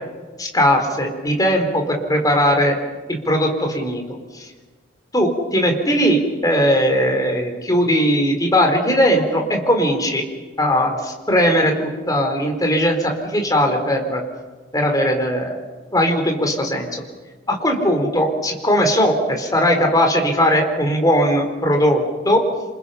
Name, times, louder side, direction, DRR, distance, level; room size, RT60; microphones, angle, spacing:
voice 1, 0.4-2.7 3.1-4.0 4.3-4.5 5.1-10.2 10.6-14.2 14.7-15.6 15.9-16.9 17.5-22.4, equal, 20° left, 3 dB, 4.0 m, -19 dB
27.5 x 27.5 x 5.7 m, 1.3 s
head